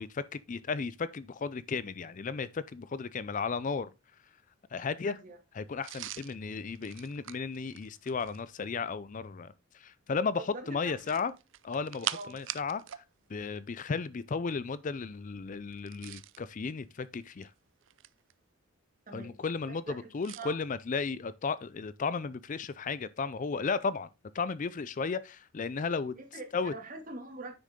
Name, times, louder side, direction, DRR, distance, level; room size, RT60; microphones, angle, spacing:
voice 1, 0.0-3.9 4.7-5.1 5.6-11.3 11.6-13.0 13.3-17.5 19.1-24.1 24.3-26.1 26.5-26.7, left 5 dB, 35° left, 0.4 m, -34 dB
voice 2, 5.0-5.4 10.4-11.2 12.1-12.4 19.1-19.4 19.7-20.1 20.4-20.6 26.1-27.5, right 3 dB, 40° right, 2.4 m, -44 dB
sound 1, 5.8-8.5 10.9-13.1 13.3-13.5 15.7-16.4 17.2-18.3 20.2-20.5, right 13 dB, 60° right, 0.5 m, -42 dB
9.8 x 6.5 x 3.7 m
head